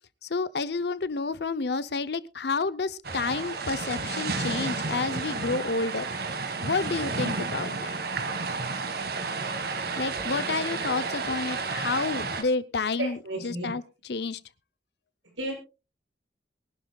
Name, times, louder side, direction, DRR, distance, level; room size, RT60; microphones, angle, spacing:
voice 1, 0.2-6.1 6.6-7.9 10.0-13.2 13.4-13.8 14.1-14.4, left 4 dB, 60° left, 15 dB, 0.7 m, -30 dB
sound 1, 3.0-12.4, right 4 dB, 55° right, 1.7 m, -31 dB
voice 2, 13.0-13.7 15.2-15.5, right 1 dB, 90° right, 0 dB, 7.3 m, -33 dB
23.0 x 11.5 x 2.3 m, 0.31 s
head